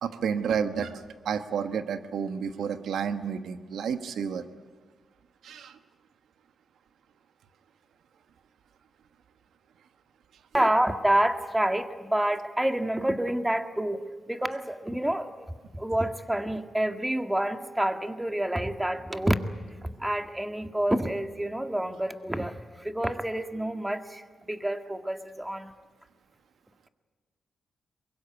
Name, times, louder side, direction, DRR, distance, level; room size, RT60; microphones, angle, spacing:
voice 1, 0.0-4.4 5.4-5.8, right 7 dB, 80° right, 9 dB, 1.3 m, -31 dB
voice 2, 10.5-15.5 15.7-19.4 19.8-25.7, right 1 dB, 10° right, 7 dB, 1.9 m, -28 dB
22.5 x 22.0 x 9.4 m, 1.4 s
supercardioid pair, 50°, 0 cm